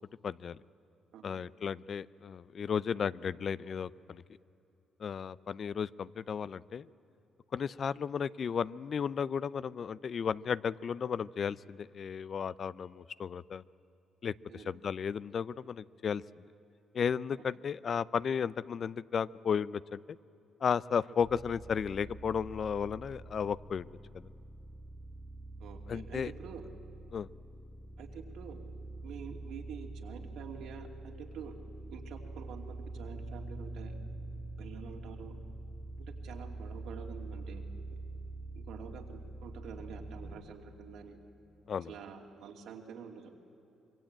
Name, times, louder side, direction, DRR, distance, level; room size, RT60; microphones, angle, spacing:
voice 1, 0.2-0.6 1.2-4.2 5.0-6.9 7.5-13.6 14.2-16.2 16.9-20.2 20.6-23.9 24.1-24.3 25.9-26.3 27.1-27.3 41.7-41.9, left 7 dB, 50° left, 19 dB, 0.5 m, -34 dB
voice 2, 1.1-1.5 14.5-14.8 25.6-26.6 28.0-28.6 29.0-31.5 31.9-34.0 34.6-35.4 36.1-37.6 37.9-38.0 38.5-41.2 41.8-43.3, right 6 dB, 80° right, 2 dB, 2.8 m, -47 dB
sound 1, 21.2-40.4, right 2 dB, 20° right, 1.8 m, -45 dB
25.5 x 22.5 x 9.0 m, 2.9 s
cardioid pair, 90°, 0 cm